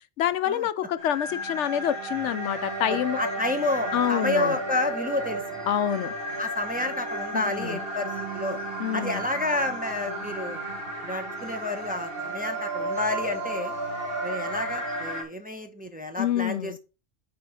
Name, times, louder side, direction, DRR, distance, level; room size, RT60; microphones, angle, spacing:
voice 1, 0.2-3.2 3.9-4.6 5.7-6.1 7.3-7.8 8.8-9.2 16.2-16.8, left 10 dB, 85° left, 0.9 m, -27 dB
sound 1, 1.0-15.2, right 1 dB, 55° right, 2.6 m, -33 dB
voice 2, 2.9-5.4 6.4-8.6 8.9-10.6 11.0-13.7 14.2-16.8, left 2 dB, 10° right, 0.8 m, -30 dB
9.5 x 3.6 x 5.6 m
omnidirectional pair, 1.2 m